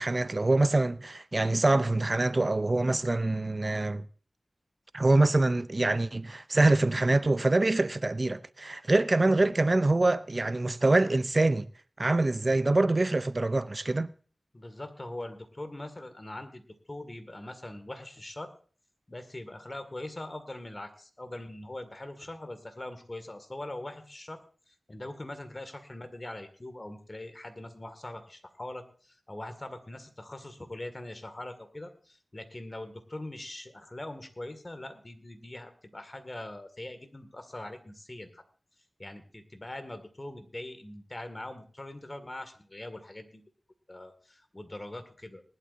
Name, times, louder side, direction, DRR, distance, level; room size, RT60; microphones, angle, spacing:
voice 1, 0.0-4.0 4.9-11.7 12.0-14.1, right 2 dB, 40° right, 0.5 m, -25 dB
voice 2, 14.5-16.6 16.9-18.5 19.1-24.4 24.9-38.4 39.0-43.4 43.9-45.4, left 1 dB, 30° left, 2.0 m, -42 dB
19.5 x 11.5 x 2.7 m
wide cardioid pair, 65°, 0 cm